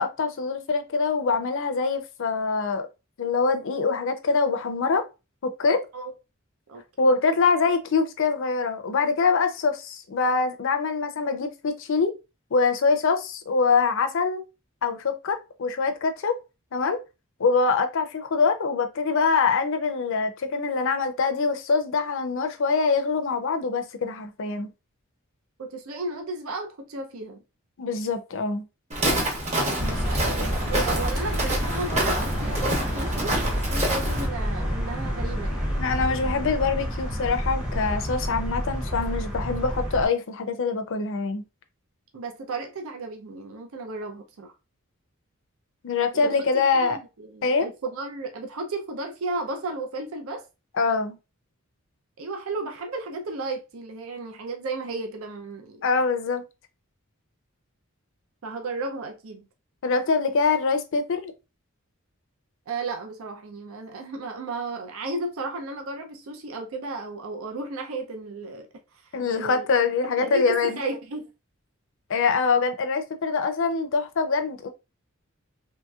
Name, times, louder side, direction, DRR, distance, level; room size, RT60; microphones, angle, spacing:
voice 1, 0.0-2.9 3.2-5.0 5.4-5.8 7.0-12.1 12.5-14.4 14.8-16.3 16.7-17.0 17.4-24.7 27.8-28.7 35.8-41.4 45.8-47.0 47.4-47.7 50.7-51.2 55.8-56.4 59.8-61.3 69.1-70.8 72.1-74.7, left 4 dB, 60° left, 0.5 m, -24 dB
voice 2, 6.7-7.1 25.6-27.4 29.8-35.8 42.1-44.5 46.2-50.4 52.2-55.9 58.4-59.5 62.7-68.7 69.1-69.7 70.0-71.3, right 3 dB, 70° right, 0.5 m, -34 dB
Walk footsteps, 28.9-34.3, right 1 dB, 30° right, 0.9 m, -27 dB
sound 1, 29.8-40.1, equal, 5° right, 0.7 m, -28 dB
3.0 x 2.8 x 2.3 m
head